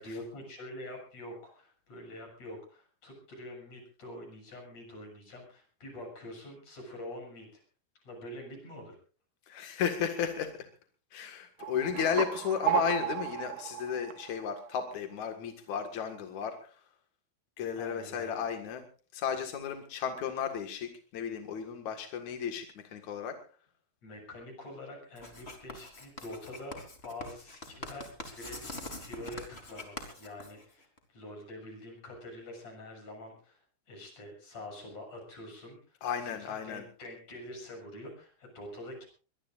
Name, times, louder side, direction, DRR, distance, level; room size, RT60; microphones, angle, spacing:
voice 1, 0.0-7.6 8.0-9.0 17.8-18.4 24.0-39.1, left 1 dB, 30° left, 3 dB, 8.2 m, -46 dB
voice 2, 9.5-10.5 11.1-16.7 17.6-18.8 19.1-23.3 36.0-36.8, left 7 dB, 55° left, 5 dB, 2.1 m, -34 dB
sound 1, 11.6-14.9, right 12 dB, 75° right, 4.2 m, -34 dB
Writing, 25.2-31.0, left 2 dB, 15° left, 2.6 m, -44 dB
23.0 x 21.5 x 2.6 m, 0.37 s
omnidirectional pair, 5.8 m